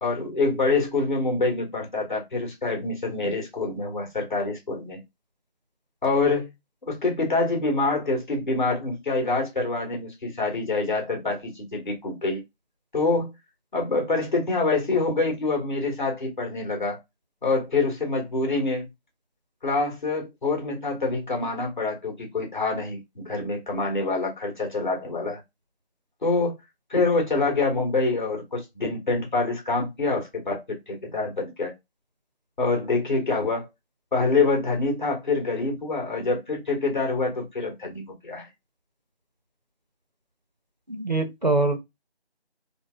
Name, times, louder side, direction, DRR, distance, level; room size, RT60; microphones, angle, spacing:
voice 1, 0.0-5.0 6.0-6.5 6.9-12.4 12.9-13.3 13.7-17.0 17.4-18.9 19.6-25.4 26.2-26.5 26.9-31.7 32.6-33.7 34.1-38.5, left 3 dB, 45° left, 1.5 m, -26 dB
voice 2, 40.9-41.8, right 2 dB, 40° right, 0.5 m, -23 dB
3.3 x 2.0 x 2.4 m
figure-of-eight pair, 165°, 32 cm